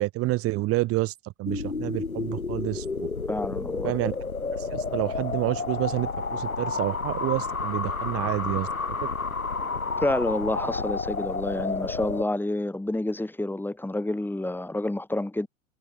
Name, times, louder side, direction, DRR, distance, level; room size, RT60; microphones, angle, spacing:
voice 1, 0.0-2.9 3.8-4.1 4.5-8.7, right 19 dB, 35° right, 1.1 m, -28 dB
sound 1, 1.5-12.2, left 4 dB, 85° left, 3.0 m, -30 dB
voice 2, 3.3-4.0 10.0-15.5, left 1 dB, 5° left, 5.3 m, -29 dB
figure-of-eight pair, 85°, 41 cm